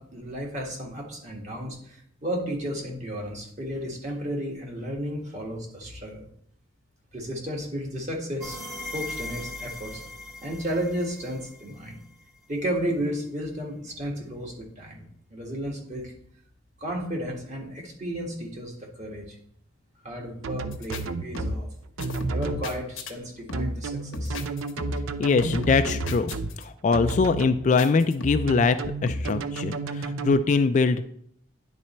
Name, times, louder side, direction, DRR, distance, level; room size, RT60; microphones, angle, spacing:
voice 1, 0.0-6.3 7.1-8.6 8.9-10.0 10.4-12.0 12.5-15.0 15.3-16.1 16.8-19.4 20.0-21.7 22.3-24.4, equal, 35° right, -1 dB, 1.7 m, -33 dB
sound 1, 8.4-12.1, left 2 dB, ahead, 1.1 m, -39 dB
sound 2, 20.4-21.6 22.0-22.6 23.5-26.5 26.9-27.6 28.5-30.3, right 4 dB, 80° right, 0.5 m, -32 dB
sound 3, 20.7-21.0 21.3-21.7 22.0-23.1 23.5-23.9 24.1-25.2 25.4-26.6 26.9-27.3 27.8-28.6 29.1-29.3, left 1 dB, 80° left, 0.9 m, -32 dB
voice 2, 25.2-26.3 26.6-31.1, left 4 dB, 40° left, 10 dB, 0.3 m, -23 dB
10.0 x 4.1 x 4.3 m, 0.68 s
head